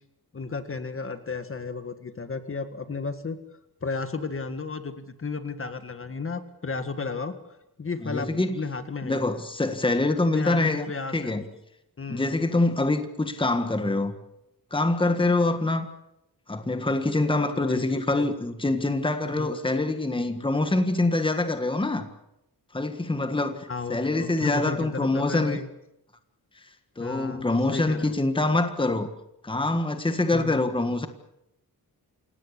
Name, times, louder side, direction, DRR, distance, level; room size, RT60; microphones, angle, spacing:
voice 1, 0.3-3.4 3.8-7.3 7.8-9.3 10.3-11.4 12.0-12.4 17.5-18.3 19.3-19.5 23.7-25.7 27.0-28.1 30.3-30.6, left 4 dB, 35° left, 1.8 m, -33 dB
voice 2, 8.0-8.6 9.0-10.9 11.1-11.5 12.1-14.1 14.7-15.9 16.5-22.1 22.7-25.6 27.0-29.1 29.4-31.1, left 2 dB, 15° left, 1.7 m, -25 dB
27.5 x 18.0 x 8.5 m
wide cardioid pair, 140°, 37 cm